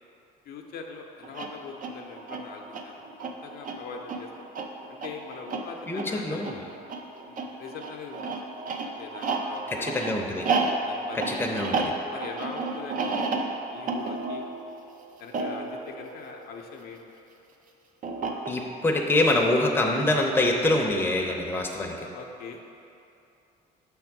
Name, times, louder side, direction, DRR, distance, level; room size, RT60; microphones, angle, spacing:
voice 1, 0.4-4.3 4.9-6.7 7.2-8.3 8.8-10.2 10.9-11.7 12.1-14.4 15.2-17.0 21.3-21.4 22.1-22.8, left 5 dB, 65° left, 1 dB, 0.6 m, -42 dB
sound 1, 1.2-17.0 18.0-18.9, right 3 dB, 50° right, 0.6 m, -32 dB
voice 2, 5.9-6.6 9.8-10.5 11.1-11.9 18.5-21.9, left 2 dB, 15° left, 0 dB, 0.7 m, -25 dB
6.0 x 3.5 x 5.9 m, 2.7 s
cardioid pair, 110°, 17 cm